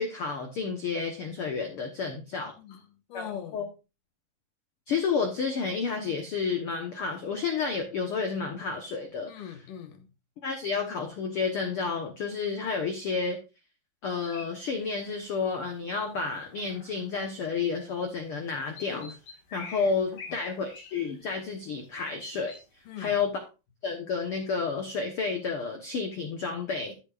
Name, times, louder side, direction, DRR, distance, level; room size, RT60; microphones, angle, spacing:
voice 1, 0.0-2.5 3.1-3.3 3.5-3.6 4.9-9.3 10.4-13.4 14.0-19.2 19.5-22.5 23.0-23.3 23.8-26.9, left 5 dB, 85° left, 4 dB, 1.2 m, -31 dB
voice 2, 2.6-3.7 9.3-10.1 20.3-20.4 22.9-23.2, left 9 dB, 65° left, 6 dB, 2.7 m, -41 dB
sound 1, 14.2-15.2 15.6-15.7 15.9-16.2 16.5-17.4 18.2-18.3 18.5-21.5 21.8-22.6, left 4 dB, 50° left, 2.6 m, -46 dB
13.5 x 7.4 x 2.5 m, 0.29 s
omnidirectional pair, 4.3 m